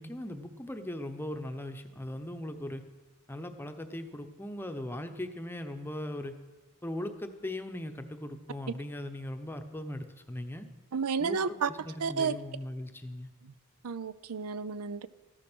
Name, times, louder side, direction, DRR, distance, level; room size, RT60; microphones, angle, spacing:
voice 1, 0.0-2.8 3.3-6.3 6.8-10.7 11.2-13.3, left 1 dB, 10° left, 6 dB, 0.8 m, -39 dB
voice 2, 10.9-11.7 12.0-12.4 13.4-13.5 13.8-15.1, right 5 dB, 90° right, 16 dB, 0.6 m, -31 dB
14.5 x 12.0 x 6.1 m, 1.2 s
head